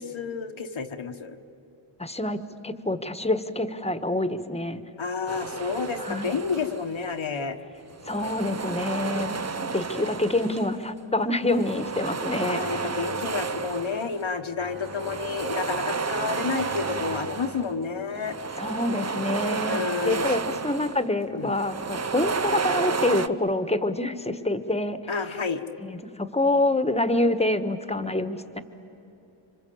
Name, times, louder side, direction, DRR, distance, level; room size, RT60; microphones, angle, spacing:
voice 1, 0.0-1.4 5.0-7.6 9.9-10.1 12.5-18.4 19.7-20.2 21.3-21.6 25.1-25.6, left 5 dB, 65° left, 5 dB, 1.4 m, -30 dB
voice 2, 2.0-4.8 6.0-6.4 8.0-9.4 9.7-12.9 18.6-25.0 25.8-28.6, left 2 dB, 10° left, 11 dB, 1.4 m, -26 dB
sound 1, 5.3-7.1 7.9-10.9 11.5-14.2 14.7-17.7 18.1-21.1 21.4-23.3, right 4 dB, 30° right, 0.8 m, -31 dB
Guitar, 12.6-14.1 14.6-18.5, right 3 dB, 90° right, 5.2 m, -46 dB
27.0 x 25.0 x 8.7 m, 2.9 s
cardioid pair, 55°, 50 cm